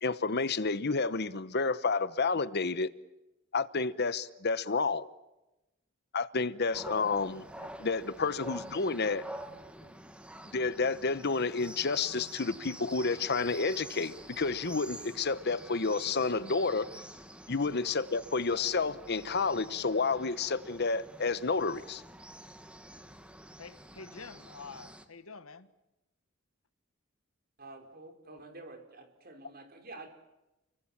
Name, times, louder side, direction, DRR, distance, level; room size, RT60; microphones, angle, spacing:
voice 1, 0.0-2.9 3.5-5.1 6.1-7.4 7.8-9.2 10.5-16.9 17.5-22.0, left 4 dB, 55° left, 1.0 m, -30 dB
sound 1, 6.7-25.1, right 1 dB, 5° right, 1.8 m, -48 dB
voice 2, 9.5-10.0 18.5-18.8 22.4-22.5 23.6-25.7, left 4 dB, 80° left, 1.6 m, -49 dB
voice 3, 27.6-30.1, right 2 dB, 45° right, 4.8 m, -49 dB
30.0 x 23.5 x 7.3 m
head